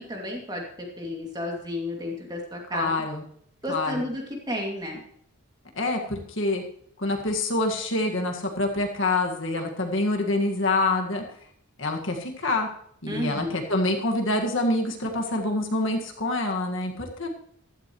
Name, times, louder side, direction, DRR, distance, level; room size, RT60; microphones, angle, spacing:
voice 1, 0.0-2.9 3.6-5.0 13.1-13.6, left 1 dB, 20° right, 0 dB, 2.6 m, -32 dB
voice 2, 2.7-3.2 3.7-4.0 5.8-6.6 7.0-11.2 11.8-12.7 13.0-17.3, left 2 dB, 60° left, 2 dB, 1.9 m, -26 dB
15.5 x 12.5 x 3.2 m, 0.65 s
head